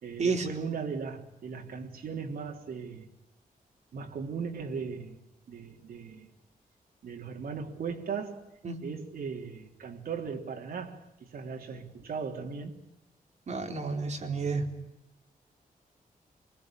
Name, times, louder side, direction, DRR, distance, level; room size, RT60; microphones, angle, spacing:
voice 1, 0.0-3.1 3.9-5.2 5.5-6.3 7.0-8.5 8.8-12.8, right 5 dB, 85° right, 3.4 m, -38 dB
voice 2, 13.5-14.7, right 4 dB, 50° right, 3.8 m, -30 dB
28.5 x 20.5 x 9.0 m
wide cardioid pair, 130°, 15 cm